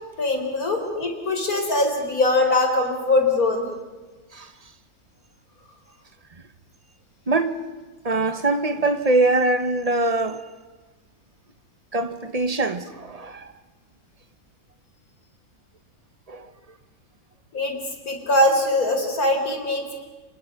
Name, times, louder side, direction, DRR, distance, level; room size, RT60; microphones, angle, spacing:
voice 1, 0.2-3.7 17.5-17.8 18.1-19.9, left 2 dB, 65° left, 4.2 m, -22 dB
voice 2, 7.3-7.6 8.0-10.4 11.9-13.5 16.3-16.5, right 2 dB, 25° right, 1.2 m, -23 dB
29.0 x 25.0 x 6.0 m
omnidirectional pair, 1.6 m